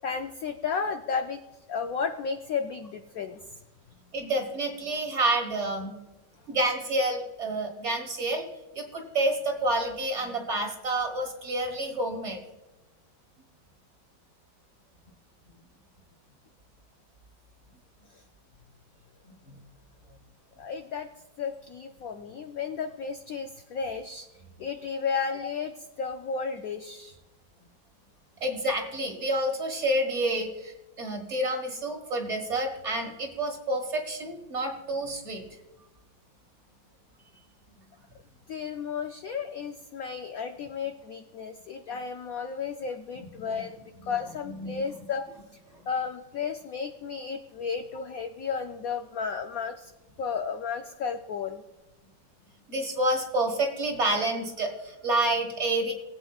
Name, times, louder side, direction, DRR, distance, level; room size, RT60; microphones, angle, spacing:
voice 1, 0.0-1.4 1.7-3.4 20.6-21.1 21.4-24.3 24.6-27.2 38.5-43.8 44.0-45.3 45.9-49.9 50.2-51.6, left 6 dB, 75° left, 7 dB, 0.8 m, -33 dB
voice 2, 4.1-5.9 6.5-8.5 8.7-12.4 19.4-19.6 28.4-35.4 43.5-43.6 44.4-44.9 52.7-55.9, right 1 dB, 40° right, 3 dB, 1.6 m, -29 dB
20.0 x 8.5 x 2.3 m, 1.0 s
omnidirectional pair, 2.1 m